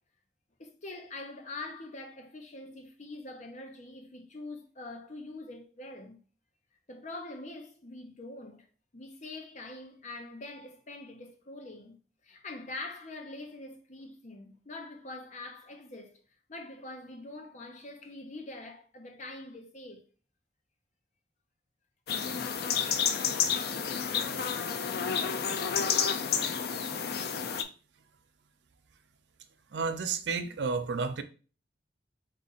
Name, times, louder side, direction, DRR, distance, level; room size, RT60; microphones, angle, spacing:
voice 1, 0.6-6.2 6.9-8.7 8.9-12.0 12.2-16.2 16.5-20.1, left 2 dB, 45° left, 0.8 m, -44 dB
sound 1, 22.1-27.6, left 7 dB, 60° left, 0.4 m, -30 dB
voice 2, 29.7-31.2, right 4 dB, 75° right, 0.5 m, -31 dB
4.0 x 2.4 x 4.0 m
head